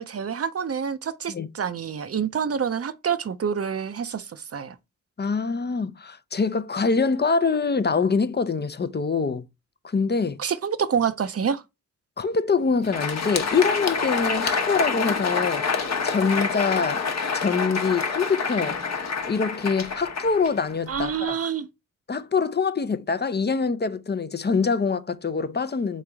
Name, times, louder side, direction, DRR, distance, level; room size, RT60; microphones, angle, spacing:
voice 1, 0.0-4.8 10.4-11.6 20.9-21.7, right 7 dB, 45° right, 0.6 m, -27 dB
voice 2, 5.2-9.5 9.8-10.4 12.2-17.1 17.3-18.8 19.3-21.4 22.1-26.0, left 5 dB, 30° left, 0.5 m, -24 dB
Crowd, 12.7-21.2, left 5 dB, 55° left, 1.0 m, -27 dB
3.8 x 3.2 x 3.4 m
cardioid pair, 60°, 32 cm